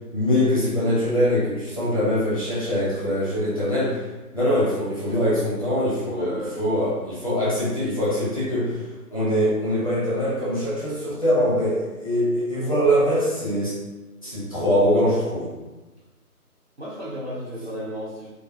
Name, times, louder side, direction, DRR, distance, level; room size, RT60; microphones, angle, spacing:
voice 1, 0.1-4.0 4.3-8.8 9.1-13.7 14.2-15.5, equal, 25° left, -10 dB, 0.6 m, -23 dB
voice 2, 6.1-6.6 16.8-18.3, equal, 45° right, -8 dB, 0.5 m, -33 dB
2.5 x 2.3 x 2.5 m, 1.1 s
figure-of-eight pair, 155°, 47 cm